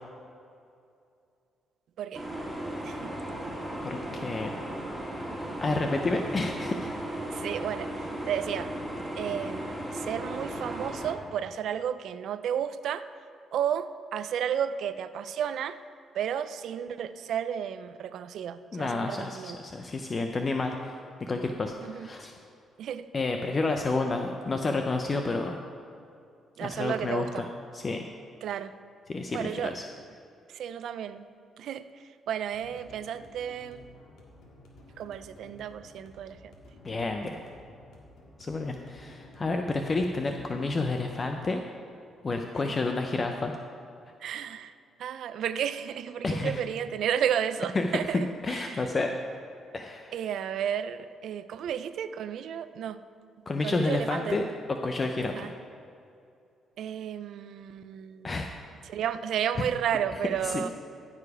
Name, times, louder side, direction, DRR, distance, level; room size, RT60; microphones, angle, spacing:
sound 1, 2.1-11.1, right 1 dB, 5° right, 2.0 m, -36 dB
voice 1, 3.8-4.5 5.6-6.9 18.7-22.3 23.1-25.6 26.6-27.5 27.7-28.0 29.1-29.8 36.8-37.4 38.4-41.6 42.2-43.6 46.2-46.6 47.7-49.1 49.7-50.1 53.5-55.5 58.2-58.7 59.6-59.7 60.4-60.7, left 3 dB, 35° left, 4 dB, 0.6 m, -30 dB
voice 2, 7.3-8.0 8.3-8.7 9.2-13.0 13.5-15.8 16.1-19.6 21.9-22.1 22.8-23.1 26.6-27.4 28.4-28.7 29.3-29.7 30.5-31.2 31.6-31.8 32.3-33.8 35.0-36.5 42.6-42.7 44.2-44.7 45.0-48.8 50.1-53.0 53.6-54.3 55.3-55.5 56.8-58.4 58.9-60.7, right 9 dB, 75° right, 13 dB, 0.4 m, -32 dB
sound 2, 32.5-41.2, left 1 dB, 75° left, 1.8 m, -53 dB
14.5 x 4.9 x 4.8 m, 2.5 s
cardioid pair, 90°, 0 cm